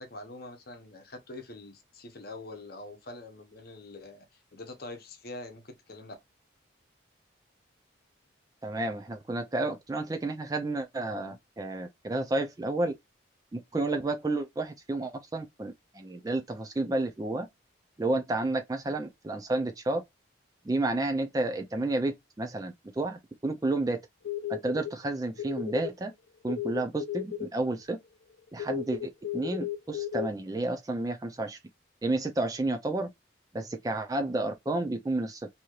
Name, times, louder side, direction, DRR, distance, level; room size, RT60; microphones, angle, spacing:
voice 1, 0.0-6.1, left 2 dB, 50° left, 0.8 m, -44 dB
voice 2, 8.6-12.9 13.5-17.5 18.0-20.0 20.6-24.0 24.5-26.1 26.4-28.0 28.5-31.6 32.0-33.1 33.5-35.5, right 2 dB, 20° right, 0.3 m, -31 dB
sound 1, 24.2-24.9 25.4-25.9 26.5-27.5 28.6-30.3, left 12 dB, 80° left, 0.5 m, -34 dB
3.1 x 2.8 x 2.3 m
head